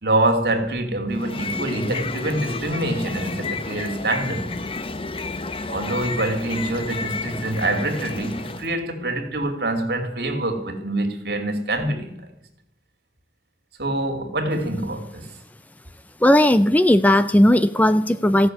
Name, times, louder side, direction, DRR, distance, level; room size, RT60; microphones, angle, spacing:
voice 1, 0.0-4.6 5.7-12.2 13.8-15.3, right 1 dB, 65° right, 2.6 m, -25 dB
sound 1, 1.1-8.7, left 3 dB, 30° left, 0.8 m, -31 dB
voice 2, 16.2-18.5, left 1 dB, 10° left, 0.4 m, -16 dB
15.5 x 6.7 x 9.6 m
head